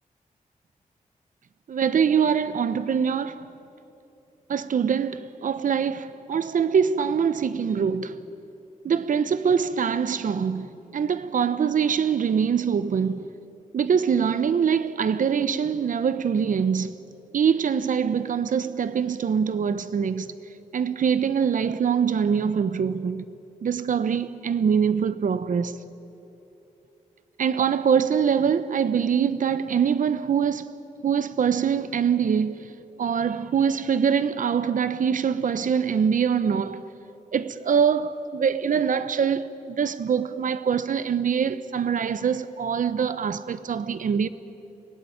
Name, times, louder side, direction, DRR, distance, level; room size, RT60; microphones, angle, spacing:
voice 1, 1.7-3.5 4.5-8.2 8.8-13.2 13.7-16.9 17.3-20.3 20.7-23.2 23.6-25.7 27.4-30.7 31.0-36.9 37.3-44.3, right 7 dB, 70° right, 1.0 m, -24 dB
23.5 x 17.0 x 9.6 m
cardioid pair, 60°, 14 cm